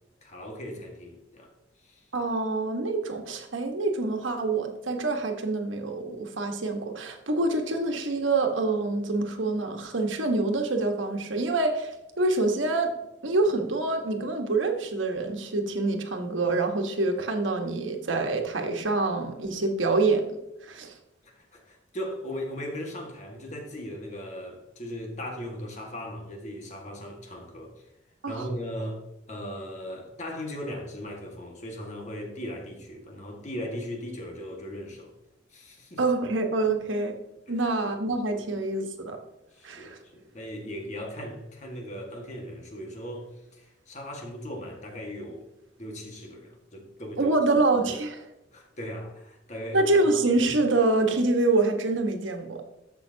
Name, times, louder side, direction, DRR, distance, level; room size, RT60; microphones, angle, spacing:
voice 1, 0.2-1.5 1.8-2.1 21.2-27.7 28.3-29.0 29.3-35.1 35.5-36.0 38.3-38.5 39.5-45.4 45.8-47.3 48.5-49.9, equal, 40° left, 1.8 m, -38 dB
voice 2, 2.1-11.9 12.2-12.9 13.2-20.2 20.6-20.9 28.2-28.5 36.0-37.1 37.5-39.2 39.6-40.0 47.2-48.2 49.7-52.6, right 2 dB, 90° right, 1.5 m, -26 dB
11.5 x 7.5 x 2.9 m
head